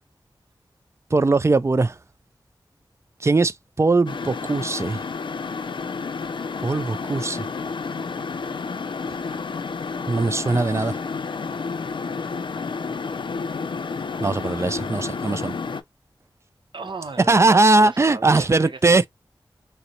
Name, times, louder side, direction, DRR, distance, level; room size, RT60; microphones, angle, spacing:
voice 1, 1.1-1.9 3.2-5.0 6.6-7.5 10.1-11.0 14.2-15.6 17.3-19.1, right 3 dB, 30° right, 0.3 m, -20 dB
sound 1, 4.1-15.8, left 4 dB, 65° left, 0.4 m, -30 dB
voice 2, 7.8-9.0 16.7-19.1, right 4 dB, 65° right, 0.8 m, -39 dB
3.9 x 2.1 x 2.8 m
cardioid pair, 45°, 9 cm